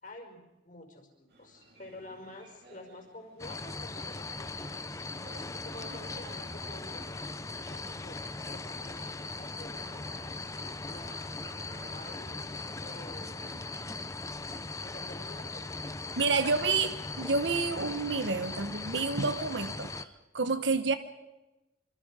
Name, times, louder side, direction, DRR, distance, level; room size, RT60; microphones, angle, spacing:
voice 1, 0.0-5.1 5.6-7.2 7.6-11.2 11.8-13.6 14.8-16.4, left 1 dB, 45° left, 3 dB, 5.1 m, -50 dB
sound 1, 1.3-14.1, right 2 dB, 60° right, 4.9 m, -56 dB
sound 2, 3.4-20.0, left 3 dB, 15° left, 0.8 m, -39 dB
voice 2, 16.2-20.9, right 4 dB, 75° right, 10 dB, 1.2 m, -29 dB
26.5 x 26.0 x 5.0 m, 1.0 s
head